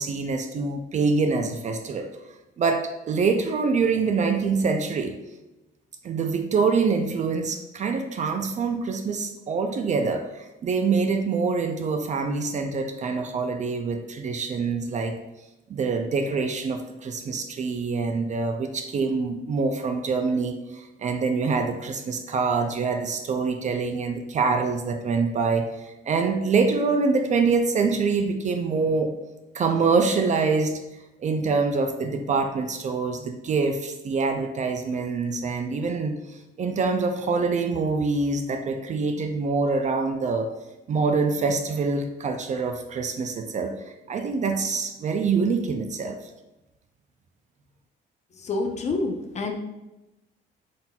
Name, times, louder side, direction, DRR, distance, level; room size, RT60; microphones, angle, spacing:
voice 1, 0.0-2.1 2.6-5.1 6.0-15.2 15.7-29.1 29.5-30.8 31.2-40.5 40.9-43.8 44.1-46.2, right 4 dB, 40° right, 6 dB, 0.4 m, -25 dB
voice 2, 48.4-49.5, left 3 dB, 35° left, 4 dB, 0.6 m, -27 dB
4.2 x 3.8 x 2.3 m, 0.97 s
cardioid pair, 110°, 20 cm